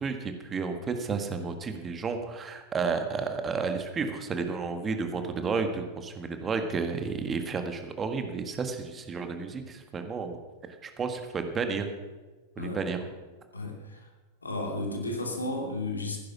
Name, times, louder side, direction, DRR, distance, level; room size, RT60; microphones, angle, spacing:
voice 1, 0.0-10.4 10.8-11.9 12.6-13.0, right 5 dB, 20° right, 6 dB, 1.6 m, -32 dB
voice 2, 12.6-13.1 13.5-14.1 14.4-16.2, left 2 dB, 80° left, 2 dB, 2.7 m, -33 dB
15.0 x 10.5 x 6.1 m, 1.3 s
figure-of-eight pair, 90°, 0 cm